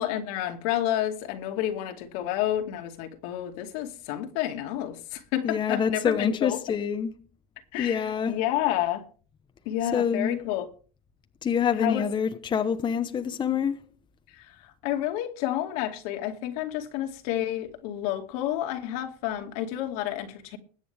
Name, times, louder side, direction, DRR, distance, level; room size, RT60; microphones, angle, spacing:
voice 1, 0.0-6.6 7.7-9.1 9.7-10.7 11.8-12.1 14.3-20.6, left 12 dB, 70° left, 2.3 m, -30 dB
voice 2, 5.4-7.1 7.8-8.4 9.9-10.4 11.4-13.9, left 7 dB, 25° left, 1.0 m, -26 dB
21.5 x 8.5 x 3.5 m
supercardioid pair, 120°, 20 cm